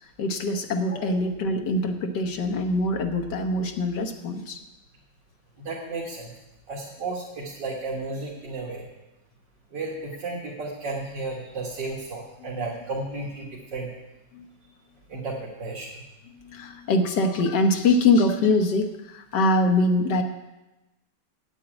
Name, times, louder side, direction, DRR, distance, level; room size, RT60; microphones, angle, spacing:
voice 1, 0.2-4.6 14.3-14.5 16.4-20.2, left 2 dB, 75° left, 5 dB, 1.7 m, -23 dB
voice 2, 5.6-6.3 6.7-8.8 9.7-13.9 15.1-15.9, right 3 dB, 80° right, -4 dB, 2.4 m, -33 dB
8.9 x 8.4 x 8.8 m, 1.0 s
omnidirectional pair, 1.9 m